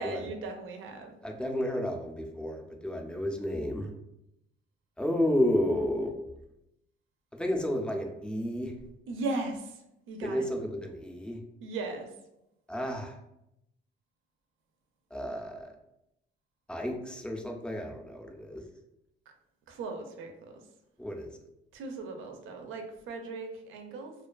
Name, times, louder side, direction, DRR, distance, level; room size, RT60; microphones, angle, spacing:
voice 1, 0.0-1.1 9.1-9.8 10.1-10.4 11.6-12.1 19.7-20.6 21.7-24.1, right 3 dB, 85° right, 4 dB, 0.5 m, -37 dB
voice 2, 1.2-3.9 5.0-6.2 7.3-8.7 10.2-11.4 12.7-13.2 15.1-15.7 16.7-18.6 21.0-21.3, left 1 dB, 5° left, 2 dB, 0.3 m, -31 dB
2.4 x 2.4 x 2.2 m, 0.85 s
cardioid pair, 90°, 20 cm